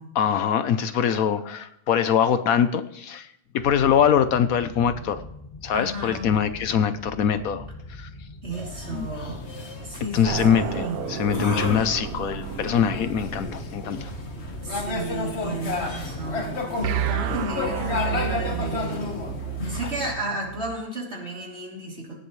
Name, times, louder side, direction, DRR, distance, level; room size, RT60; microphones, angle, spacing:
voice 1, 0.2-3.3 3.5-5.2 5.6-7.7 8.0-8.1 8.9-9.1 10.1-10.8 11.1-14.1, left 8 dB, 70° left, 11 dB, 1.2 m, -23 dB
sound 1, 3.6-19.4, left 2 dB, 20° left, 1.6 m, -42 dB
voice 2, 5.7-6.3 8.4-9.5 9.8-11.0 14.6-16.7 17.0-19.2 19.7-22.1, right 1 dB, 45° right, -3 dB, 3.5 m, -33 dB
sound 2, 8.5-20.1, left 3 dB, 45° left, 1.7 m, -32 dB
sound 3, 10.2-15.6 16.8-20.8, right 13 dB, 75° right, 1.1 m, -33 dB
18.0 x 14.0 x 3.2 m, 0.77 s
omnidirectional pair, 1.6 m